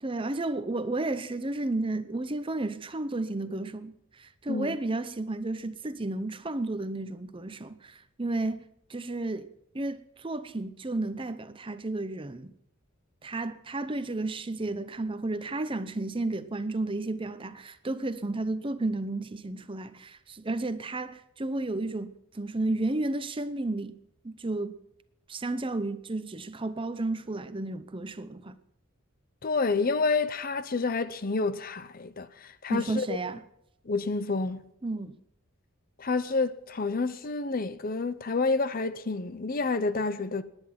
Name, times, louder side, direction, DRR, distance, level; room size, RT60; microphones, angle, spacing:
voice 1, 0.0-8.6 8.9-9.5 9.7-12.5 13.2-24.0 24.2-24.8 25.3-28.6 32.7-33.4 34.8-35.2, right 2 dB, 25° right, 0.7 m, -32 dB
voice 2, 29.4-33.1 33.9-34.7 36.0-40.4, left 3 dB, 40° left, 0.7 m, -29 dB
18.0 x 10.5 x 5.8 m
head